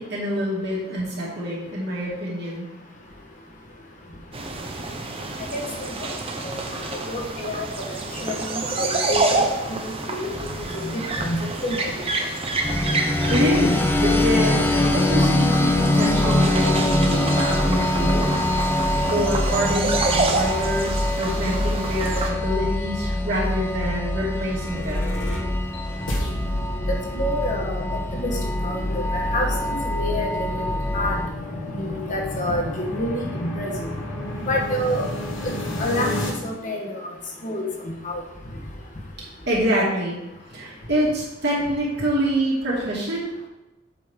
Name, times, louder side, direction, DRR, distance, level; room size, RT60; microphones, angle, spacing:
voice 1, 0.0-2.7 13.3-18.3 19.1-25.1 39.5-40.2 40.5-43.3, equal, 55° right, -5 dB, 2.7 m, -26 dB
sound 1, 4.3-22.3, right 2 dB, 30° right, 0.8 m, -28 dB
voice 2, 7.1-7.7 8.2-9.2 9.8-10.3 10.6-11.9 26.9-27.8 28.1-28.3 28.6-30.6 30.9-31.2 31.7-33.7 34.5-35.1 35.4-35.5 35.8-36.1 36.4-36.9 37.4-37.7 38.0-38.2, left 1 dB, 40° left, 0 dB, 1.1 m, -28 dB
sound 2, 12.6-31.3, left 1 dB, 10° left, 0.6 m, -23 dB
sound 3, 24.3-36.3, left 1 dB, 80° left, 1.6 m, -32 dB
7.7 x 6.2 x 3.6 m, 1.0 s
head